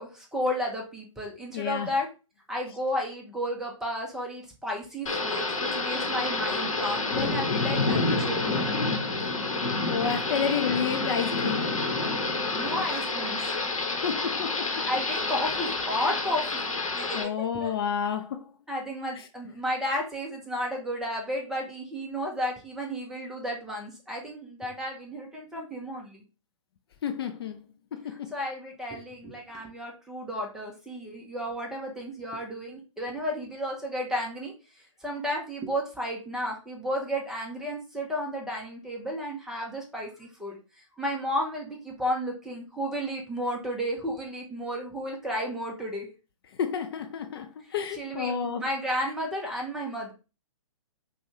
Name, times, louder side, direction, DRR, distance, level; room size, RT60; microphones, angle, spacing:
voice 1, 0.0-2.1 2.5-8.7 12.5-13.5 14.9-17.2 17.5-17.7 18.7-26.2 28.0-34.5 35.0-40.6 41.0-46.1 47.9-50.1, equal, 5° right, 0.8 m, -33 dB
voice 2, 1.5-1.9 9.9-11.7 13.9-14.8 17.1-18.5 19.1-19.2 27.0-27.6 27.9-28.3 46.6-48.6, left 7 dB, 45° left, 0.4 m, -30 dB
Thunder / Rain, 5.1-17.2, left 3 dB, 75° left, 1.0 m, -28 dB
5.2 x 2.3 x 2.9 m
figure-of-eight pair, 125°, 17 cm